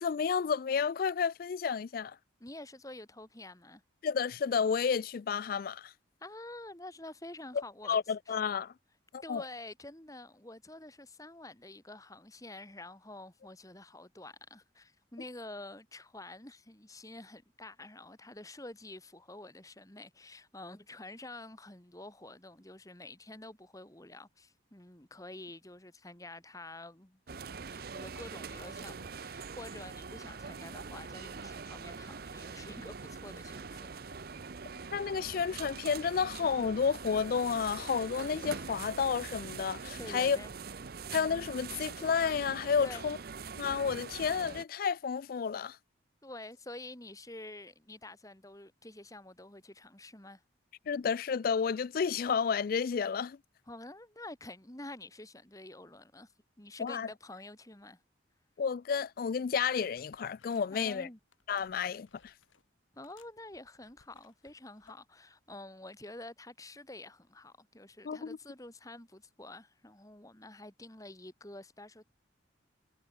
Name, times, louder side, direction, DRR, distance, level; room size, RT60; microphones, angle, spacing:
voice 1, 0.0-2.2 4.0-5.9 7.9-8.7 9.1-9.4 34.9-40.4 41.1-43.2 43.6-45.8 50.9-53.4 56.8-57.1 58.6-61.1 61.5-62.3 68.0-68.4, left 6 dB, 50° left, 0.3 m, -31 dB
voice 2, 2.4-3.8 6.2-8.0 8.3-8.4 9.2-27.4 27.7-33.9 40.0-40.5 42.8-43.0 46.2-50.4 53.7-56.3 56.6-58.0 60.7-61.2 62.9-72.1, left 2 dB, 15° left, 2.2 m, -48 dB
sound 1, 27.3-44.6, right 5 dB, 50° right, 0.7 m, -43 dB
sound 2, 59.3-60.9 61.3-62.7 63.0-65.0 65.5-65.7, left 5 dB, 85° left, 2.5 m, -67 dB
head